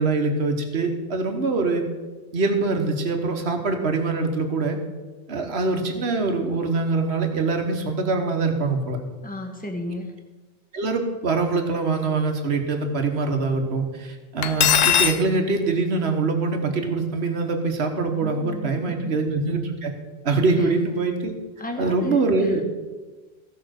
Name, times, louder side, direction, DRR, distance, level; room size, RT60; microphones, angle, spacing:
voice 1, 0.0-1.8 2.3-4.8 5.3-9.0 10.7-19.9 20.2-21.3 21.8-22.6, right 3 dB, 75° right, 4 dB, 1.5 m, -24 dB
voice 2, 9.2-10.1 18.2-19.1 20.6-20.7 21.6-22.7, left 1 dB, 10° left, 3 dB, 1.3 m, -34 dB
Cutlery silverware, 14.4-15.2, left 9 dB, 55° left, 0.5 m, -19 dB
15.5 x 5.4 x 6.4 m, 1.3 s
omnidirectional pair, 1.1 m